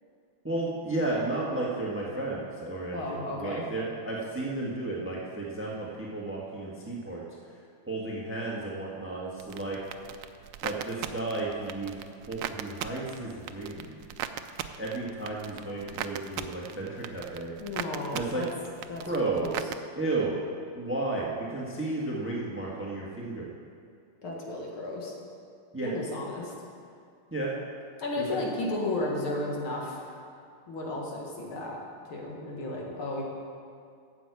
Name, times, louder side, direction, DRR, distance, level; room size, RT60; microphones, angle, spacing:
voice 1, 0.4-7.2 7.9-9.8 10.6-11.9 12.3-13.9 14.7-17.5 18.1-18.4 19.0-19.5 19.9-20.3 20.7-23.5 25.7-25.9 27.3-27.5 28.2-28.4, right 2 dB, 5° right, -3 dB, 1.2 m, -33 dB
voice 2, 2.9-3.7 17.6-18.5 18.9-19.5 24.2-25.1 25.8-26.5 28.0-30.3 30.7-31.8 32.0-33.2, left 2 dB, 85° left, -2 dB, 2.7 m, -34 dB
endoftherecord kr, 9.4-19.7, right 10 dB, 75° right, 1.2 m, -39 dB
9.4 x 7.4 x 8.2 m, 2.3 s
omnidirectional pair, 2.3 m